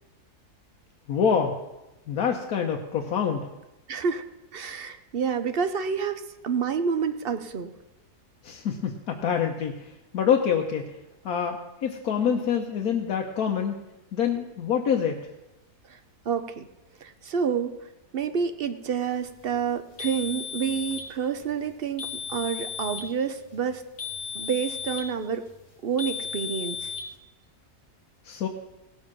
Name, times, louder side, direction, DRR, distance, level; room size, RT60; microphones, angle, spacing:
voice 1, 1.1-1.6 2.1-3.5 8.4-10.9 11.2-13.8 14.1-15.2 28.2-28.5, left 7 dB, 70° left, 2 dB, 1.3 m, -26 dB
voice 2, 3.9-4.2 4.5-7.7 15.9-16.0 16.3-16.7 17.0-17.7 18.1-23.8 24.3-25.4 25.8-26.9, right 6 dB, 55° right, 9 dB, 0.7 m, -28 dB
sound 1, 20.0-21.1 22.0-23.1 24.0-25.1 26.0-27.1, left 6 dB, 45° left, 1.6 m, -35 dB
16.5 x 7.2 x 6.0 m, 1.0 s
omnidirectional pair, 1.6 m